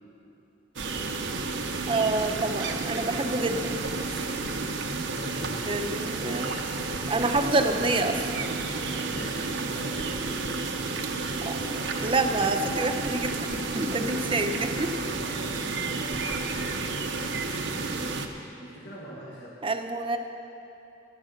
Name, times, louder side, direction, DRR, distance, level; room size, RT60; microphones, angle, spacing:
sound 1, 0.8-18.3, right 3 dB, 80° right, 1.0 m, -31 dB
voice 1, 1.9-4.3 5.7-6.5 7.1-8.3 11.4-11.6 12.0-14.9 19.6-20.2, right 2 dB, 30° right, 6 dB, 0.8 m, -27 dB
voice 2, 5.1-6.0 9.1-10.2 13.7-17.9 18.4-19.6, equal, 70° left, -7 dB, 2.2 m, -43 dB
14.5 x 11.0 x 6.6 m, 2.8 s
head